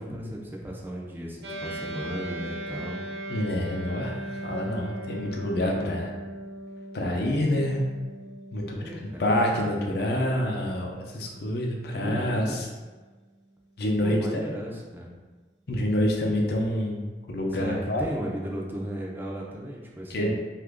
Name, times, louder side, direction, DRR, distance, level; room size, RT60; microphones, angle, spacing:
voice 1, 0.0-3.0 8.8-9.3 11.8-12.6 14.0-15.1 17.5-20.4, equal, 10° right, -2 dB, 0.4 m, -35 dB
sound 1, 1.4-13.0, right 1 dB, 70° right, 0.5 m, -39 dB
voice 2, 3.3-4.2 4.4-6.1 6.9-7.8 8.5-12.7 13.8-14.4 15.7-17.0 17.3-18.0 20.1-20.3, left 1 dB, 60° left, 0 dB, 0.5 m, -27 dB
2.9 x 2.4 x 3.5 m, 1.3 s
head